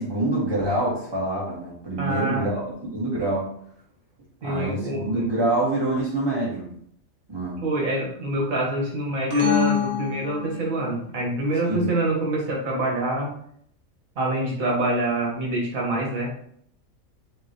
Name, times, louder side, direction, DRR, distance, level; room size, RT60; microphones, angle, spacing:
voice 1, 0.0-3.4 4.4-6.7 7.3-7.6 11.7-11.9, right 2 dB, 20° right, -5 dB, 1.4 m, -26 dB
voice 2, 2.0-2.4 4.4-5.2 7.6-13.3 14.2-16.4, right 1 dB, 80° right, -2 dB, 1.5 m, -26 dB
sound 1, 9.3-11.0, left 6 dB, 35° right, 0.9 m, -25 dB
5.3 x 2.7 x 3.0 m, 0.65 s
omnidirectional pair, 1.4 m